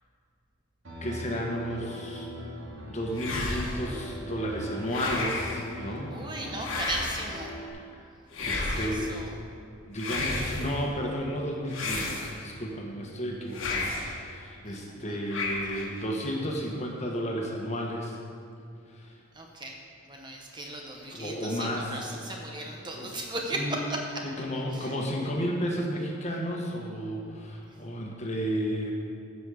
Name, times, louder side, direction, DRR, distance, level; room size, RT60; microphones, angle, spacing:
Piano, 0.8-7.7, equal, 60° right, 2.5 m, -41 dB
voice 1, 1.0-2.3 2.8-6.1 7.7-8.0 8.3-9.1 9.9-18.2 18.9-19.2 21.1-22.1 22.9-23.1 23.5-23.8 24.2-28.9, equal, 30° left, -1 dB, 1.2 m, -33 dB
sound 1, 3.2-4.0 4.9-5.6 6.6-7.4 8.3-9.1 10.0-10.8 11.7-12.6 13.5-14.2 15.3-16.0, left 2 dB, 65° left, 1.4 m, -32 dB
voice 2, 6.1-7.5 8.7-9.3 14.8-15.2 19.3-19.8 20.1-24.0 24.7-24.9, right 2 dB, 20° right, 0 dB, 0.7 m, -37 dB
15.0 x 5.5 x 5.0 m, 2.5 s
head